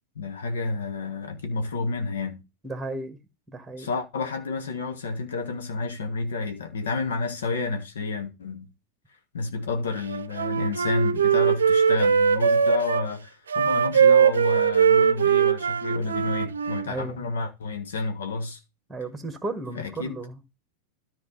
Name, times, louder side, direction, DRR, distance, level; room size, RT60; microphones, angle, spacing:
voice 1, 0.1-2.4 3.8-8.7 9.3-18.6 19.7-20.2, left 3 dB, 65° left, 1.4 m, -30 dB
voice 2, 2.6-3.2 3.5-3.9 16.9-17.3 18.9-20.4, right 2 dB, 5° right, 1.7 m, -34 dB
Wind instrument woodwind instrument, 10.1-13.0 13.5-16.9, right 7 dB, 70° right, 0.6 m, -21 dB
13.5 x 4.5 x 4.1 m
figure-of-eight pair, 90°, 0 cm